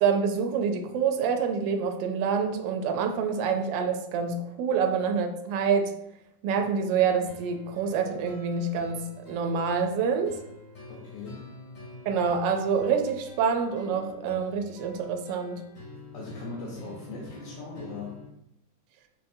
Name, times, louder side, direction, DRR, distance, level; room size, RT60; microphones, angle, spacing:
voice 1, 0.0-5.9 6.4-10.3 12.1-15.6, right 6 dB, 75° right, 4 dB, 1.3 m, -27 dB
sound 1, 7.3-18.3, left 2 dB, 55° left, 2.3 m, -47 dB
voice 2, 10.9-11.5 16.1-18.2, left 3 dB, 70° left, -4 dB, 1.4 m, -39 dB
6.5 x 2.6 x 2.7 m, 0.79 s
omnidirectional pair, 2.1 m